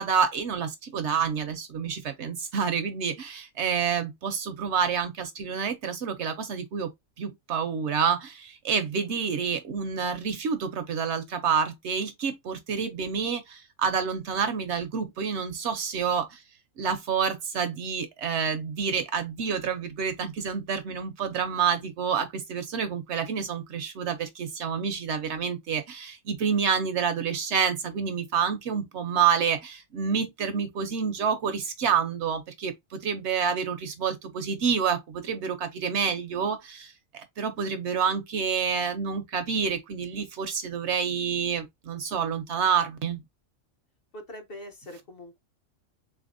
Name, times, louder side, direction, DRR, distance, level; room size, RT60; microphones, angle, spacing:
voice 1, 0.0-6.9 7.2-16.4 16.8-43.2, right 6 dB, 65° right, 0.8 m, -28 dB
voice 2, 44.1-45.4, left 1 dB, 50° left, 0.9 m, -43 dB
3.7 x 3.4 x 2.5 m
omnidirectional pair, 1.4 m